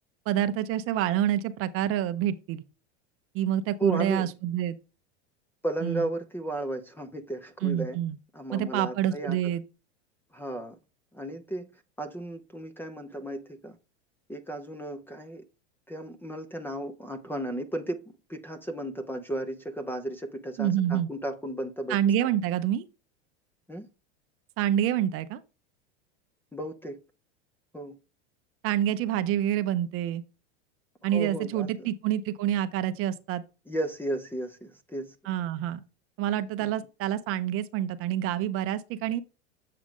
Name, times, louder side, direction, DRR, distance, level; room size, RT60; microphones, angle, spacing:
voice 1, 0.3-2.6 3.3-4.8 5.8-6.1 7.6-8.2 8.5-9.6 20.6-21.1 21.9-22.8 24.6-25.4 28.6-30.2 31.0-33.4 35.3-35.8 36.2-39.2, right 11 dB, 40° right, 0.6 m, -27 dB
voice 2, 3.8-4.3 5.6-8.0 8.3-9.4 10.3-10.8 11.1-11.7 12.0-13.8 14.3-15.4 15.9-18.0 18.3-22.3 23.7-23.9 26.5-27.0 27.7-28.0 31.1-31.9 33.7-35.1 36.6-36.7, right 1 dB, 5° left, 0.6 m, -34 dB
7.5 x 4.8 x 3.6 m
hypercardioid pair, 110°, 34 cm